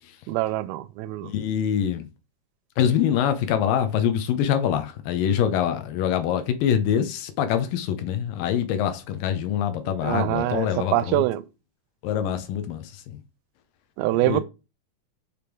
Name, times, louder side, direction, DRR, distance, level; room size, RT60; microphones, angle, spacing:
voice 1, 0.3-1.3 10.0-10.7 10.9-11.4 14.0-14.4, right 16 dB, 85° right, 2.3 m, -24 dB
voice 2, 1.2-2.1 2.8-11.3 12.0-13.2 14.2-14.4, left 9 dB, 75° left, 2.2 m, -24 dB
7.0 x 3.4 x 4.4 m
omnidirectional pair, 4.3 m